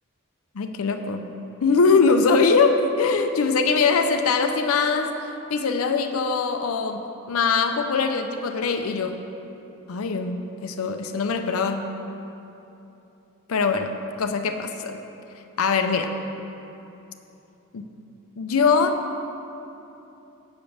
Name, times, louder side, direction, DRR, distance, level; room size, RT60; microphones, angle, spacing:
voice 1, 0.6-1.3 1.6-5.1 5.5-9.3 9.9-11.9 13.5-15.0 15.6-16.1 17.7-17.9 18.4-19.0, left 4 dB, 90° left, 6 dB, 0.5 m, -22 dB
8.1 x 5.2 x 7.1 m, 2.9 s
head